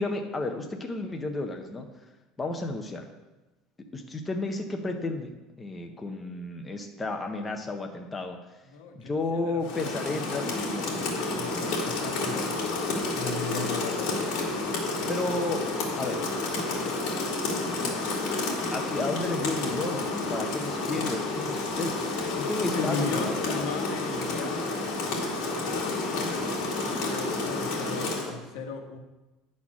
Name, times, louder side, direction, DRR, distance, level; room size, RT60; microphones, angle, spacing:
voice 1, 0.0-1.9 2.4-3.0 3.9-8.6 8.9-10.9 15.1-15.6 16.0-16.3 17.8-17.9 18.7-23.7, left 2 dB, 10° left, 3 dB, 0.5 m, -32 dB
voice 2, 8.7-12.5 13.1-14.2 22.7-24.7 25.6-29.0, left 4 dB, 80° left, 5 dB, 1.1 m, -37 dB
Rain, 9.6-28.3, left 3 dB, 55° left, 2.1 m, -30 dB
9.6 x 4.2 x 5.9 m, 1.1 s
cardioid pair, 180°, 0 cm